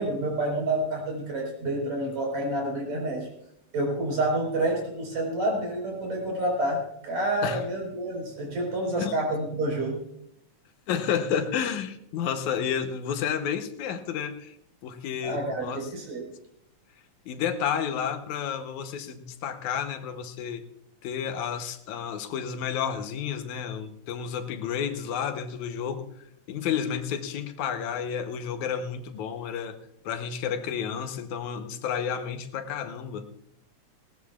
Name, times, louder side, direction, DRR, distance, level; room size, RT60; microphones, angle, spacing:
voice 1, 0.0-3.3 3.7-10.0 15.2-16.3, right 1 dB, 75° right, 0 dB, 5.7 m, -28 dB
voice 2, 10.9-14.6 14.8-15.9 17.3-20.6 21.0-29.8 30.0-33.3, left 8 dB, 80° left, 7 dB, 2.3 m, -31 dB
19.0 x 18.5 x 2.4 m, 0.75 s
omnidirectional pair, 3.3 m